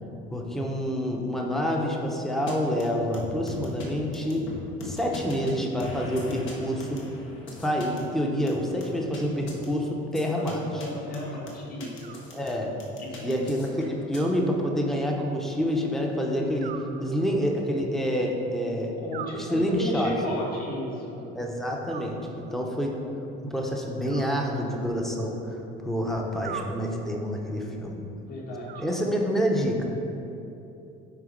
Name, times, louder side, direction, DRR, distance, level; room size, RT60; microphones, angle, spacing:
voice 1, 0.3-4.5 4.8-7.0 7.6-10.6 12.3-12.7 13.2-19.0 19.4-20.1 21.3-23.0 23.4-25.6 25.8-28.0 28.8-29.9, equal, ahead, 0 dB, 0.7 m, -27 dB
sound 1, 2.5-2.6 2.8-2.9 3.1-3.9 4.1-5.5 5.8-8.0 8.5-9.2 9.5-9.7 10.1-10.5 10.8-10.9 11.1-12.5 12.8-14.2, left 2 dB, 70° left, 1.6 m, -40 dB
voice 2, 10.7-12.2 13.0-13.4 18.9-21.3 28.2-28.8, left 1 dB, 45° left, -3 dB, 1.8 m, -34 dB
Animal, 12.0-12.9 14.1-15.2 16.6-17.7 19.1-20.1 21.9-22.8 24.1-25.2 26.4-27.4 28.7-29.6, right 8 dB, 40° right, 0.4 m, -44 dB
8.9 x 3.9 x 5.2 m, 2.8 s
cardioid pair, 135°, 21 cm